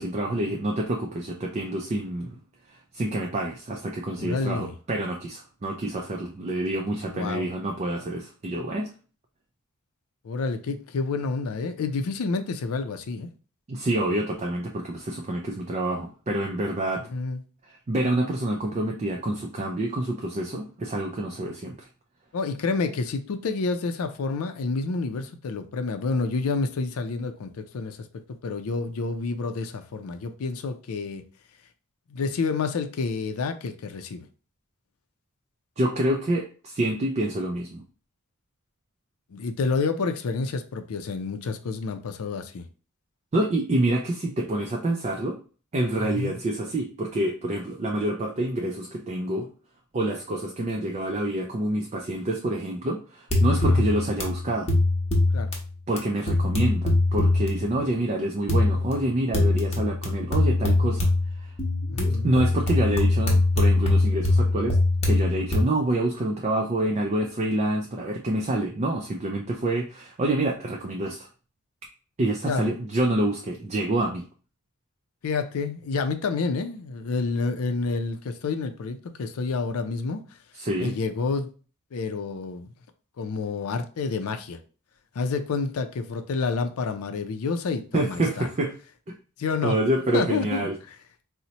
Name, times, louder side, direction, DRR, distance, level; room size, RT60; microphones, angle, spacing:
voice 1, 0.0-2.4 2.7-8.9 13.7-17.1 17.6-21.8 35.8-37.8 43.3-45.4 45.7-49.5 49.9-54.7 55.9-61.1 61.4-61.5 62.2-64.8 65.0-71.3 72.2-74.2 80.6-80.9 87.9-88.8 89.1-89.2 89.6-90.8, right 1 dB, 30° right, 0.4 m, -27 dB
voice 2, 4.2-4.7 7.0-7.5 10.2-13.3 17.1-17.4 22.3-28.0 28.4-31.2 32.1-34.3 39.3-42.6 46.0-46.3 53.6-53.8 55.3-55.5 61.9-62.3 72.4-72.7 75.2-80.2 80.8-81.5 81.9-82.7 83.2-84.6 85.2-88.5 89.4-89.8 90.1-90.7, left 4 dB, 85° left, 0.4 m, -29 dB
sound 1, 53.3-55.7 56.0-56.1 56.3-57.7 58.5-59.1 59.3-65.6, left 2 dB, 30° left, 0.8 m, -23 dB
4.0 x 2.1 x 2.8 m
head